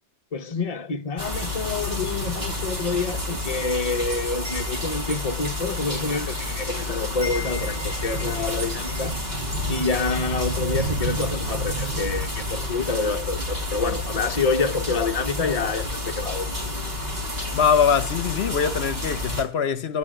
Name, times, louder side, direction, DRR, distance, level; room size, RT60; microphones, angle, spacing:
voice 1, 0.3-9.2 9.7-16.7, left 4 dB, 35° left, 1.0 m, -27 dB
sound 1, 1.2-19.4, left 1 dB, 40° right, 4.5 m, -29 dB
Wind chime, 2.7-6.8 7.0-13.0, left 1 dB, 85° right, 2.1 m, -42 dB
voice 2, 17.5-20.0, left 7 dB, 70° left, 1.0 m, -22 dB
17.0 x 6.2 x 8.9 m
omnidirectional pair, 1.1 m